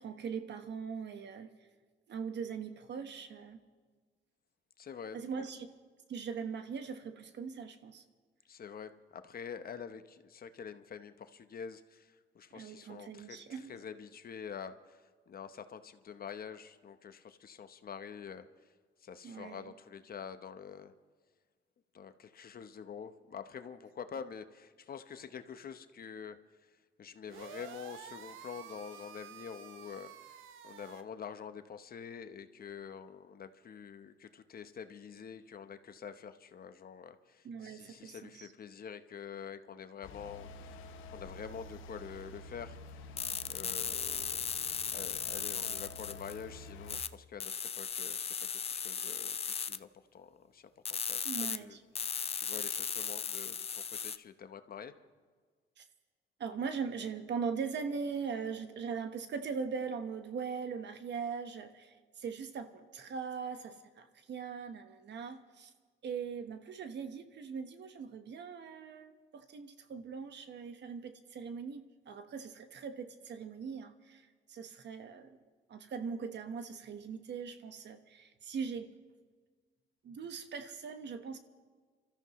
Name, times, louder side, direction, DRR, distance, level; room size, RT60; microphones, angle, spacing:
voice 1, 0.0-1.5 2.1-3.6 5.1-5.7 6.1-8.0 12.5-13.7 19.2-19.7 37.4-38.5 51.2-51.8 55.8-55.9 56.4-65.7 66.0-75.4 75.7-78.9 80.0-81.4, right 6 dB, 60° right, 8 dB, 1.3 m, -40 dB
voice 2, 4.8-5.5 8.4-18.5 19.0-20.9 21.9-43.2 43.4-44.5 44.9-51.8 52.3-55.0, left 7 dB, 50° left, 10 dB, 0.9 m, -47 dB
sound 1, 27.3-31.0, right 8 dB, 85° right, 0.9 m, -50 dB
sound 2, 40.0-47.0, left 2 dB, 85° left, 1.0 m, -49 dB
sound 3, 43.2-46.4 46.9-47.1 47.4-49.8 50.8-51.6 51.9-54.2, left 7 dB, 30° left, 0.5 m, -37 dB
27.0 x 13.5 x 3.1 m, 1.5 s
cardioid pair, 90°, 20 cm